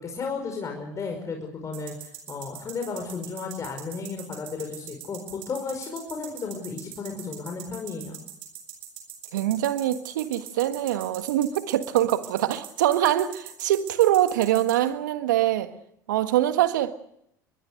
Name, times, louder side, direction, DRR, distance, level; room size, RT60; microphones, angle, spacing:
voice 1, 0.0-8.2, left 4 dB, 30° left, 5.4 m, -34 dB
sound 1, 1.7-14.7, right 13 dB, 60° right, 6.5 m, -41 dB
voice 2, 9.3-15.7 16.1-16.9, right 13 dB, 75° right, 1.6 m, -23 dB
25.0 x 21.5 x 6.6 m
hypercardioid pair, 70°, 10 cm